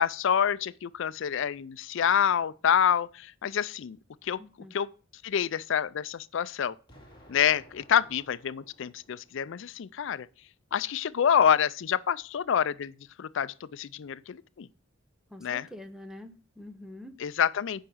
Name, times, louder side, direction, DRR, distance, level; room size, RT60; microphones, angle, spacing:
voice 1, 0.0-4.0 4.2-4.4 4.7-4.9 5.2-6.8 7.3-10.3 10.7-12.9 13.2-14.7 15.4-15.7 17.2-17.8, left 8 dB, 65° left, 0.4 m, -27 dB
voice 2, 4.4-4.8 15.3-17.1, left 1 dB, 5° right, 0.8 m, -45 dB
Explosion, 6.9-9.9, equal, 25° left, 2.6 m, -56 dB
9.2 x 4.8 x 6.1 m
head